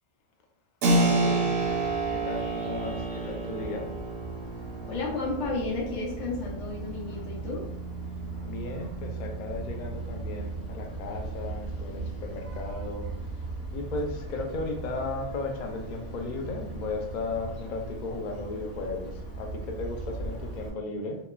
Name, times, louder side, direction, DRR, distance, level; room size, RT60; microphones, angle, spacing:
Keyboard (musical), 0.8-11.2, right 2 dB, 60° right, 0.6 m, -31 dB
voice 1, 0.9-1.9 2.2-3.9 8.4-13.1 13.7-21.2, left 3 dB, 65° left, 3 dB, 0.4 m, -35 dB
Vehicle horn car horn honking, 1.6-20.7, right 2 dB, 40° left, 0.8 m, -39 dB
voice 2, 4.8-7.7, left 3 dB, 85° left, -4 dB, 1.0 m, -32 dB
2.9 x 2.1 x 2.3 m, 0.73 s
omnidirectional pair, 1.3 m